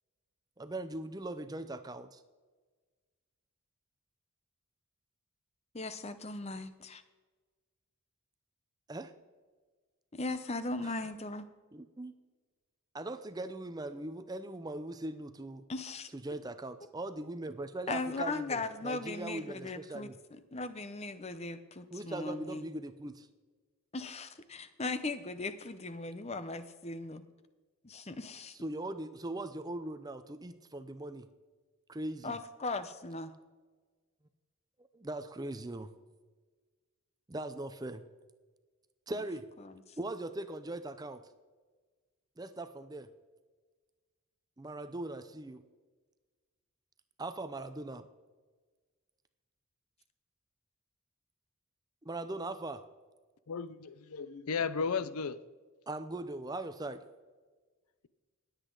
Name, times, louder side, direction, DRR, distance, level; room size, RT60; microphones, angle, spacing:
voice 1, 0.6-2.2 8.9-9.1 10.8-10.9 11.7-12.1 12.9-15.6 16.1-20.2 21.9-23.3 28.6-31.3 31.9-32.3 34.9-35.9 37.3-38.0 39.1-39.5 40.0-41.3 42.4-43.1 44.6-45.6 47.2-48.1 52.0-52.8 55.9-57.0, right 2 dB, 15° right, 10 dB, 0.5 m, -40 dB
voice 2, 5.7-7.0 10.1-11.5 15.7-16.1 17.9-22.6 23.9-27.2 27.8-28.6 32.2-33.3 39.6-39.8, left 3 dB, 30° left, 11 dB, 0.7 m, -38 dB
voice 3, 53.5-55.4, left 5 dB, 80° left, 15 dB, 0.6 m, -34 dB
20.5 x 8.2 x 3.9 m, 1.4 s
head